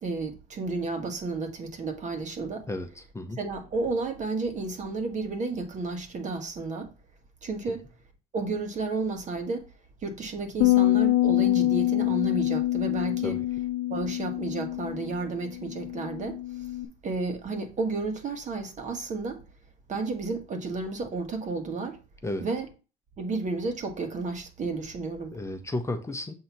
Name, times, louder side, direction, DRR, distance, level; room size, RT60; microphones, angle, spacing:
voice 1, 0.0-2.7 3.4-6.9 7.4-7.8 8.3-9.6 10.0-13.4 13.9-16.6 17.0-19.4 19.9-22.0 22.4-22.7 23.2-25.3, right 3 dB, 45° right, 1.5 m, -32 dB
voice 2, 2.7-3.4 7.7-7.8 13.2-13.5 22.2-22.5 25.3-26.3, left 2 dB, 15° left, 0.8 m, -33 dB
sound 1, 10.6-16.9, left 15 dB, 75° left, 0.7 m, -25 dB
7.6 x 2.9 x 5.8 m
cardioid pair, 110°, 17 cm